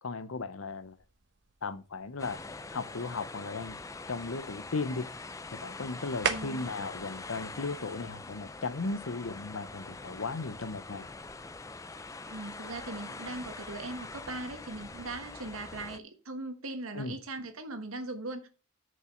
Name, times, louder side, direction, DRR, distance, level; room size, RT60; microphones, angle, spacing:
voice 1, 0.0-1.0 1.6-2.4 2.7-3.8 4.1-5.1 5.5-11.1 16.9-17.2, left 3 dB, 75° left, 0.8 m, -36 dB
sound 1, 0.6-8.6, right 6 dB, 55° right, 1.0 m, -42 dB
sound 2, 2.2-16.0, left 3 dB, 15° left, 0.4 m, -44 dB
voice 2, 6.3-6.7 12.3-18.5, right 2 dB, 85° right, 1.3 m, -39 dB
6.8 x 5.4 x 6.5 m
head